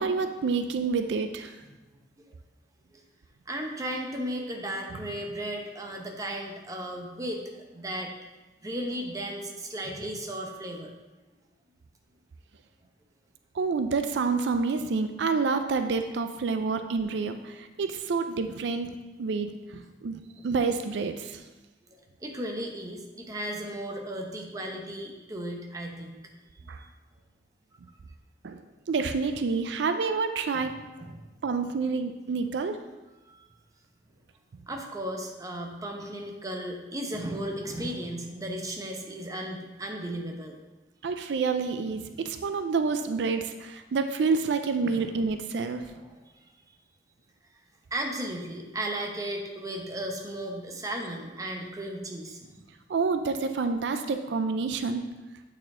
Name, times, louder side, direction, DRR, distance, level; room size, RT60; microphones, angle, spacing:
voice 1, 0.0-1.5 13.6-18.9 19.2-21.4 26.7-26.8 28.4-28.6 28.9-30.7 31.4-32.8 41.0-45.8 52.9-55.0, right 4 dB, 75° right, 8 dB, 0.4 m, -28 dB
voice 2, 3.5-7.4 7.7-8.1 8.6-10.9 16.5-16.6 17.0-17.2 21.9-26.3 26.5-26.9 30.5-31.3 33.3-33.5 34.7-40.6 44.8-45.2 45.9-46.2 47.9-52.6, right 1 dB, 20° right, 2 dB, 0.8 m, -35 dB
8.5 x 4.3 x 3.7 m, 1.1 s
head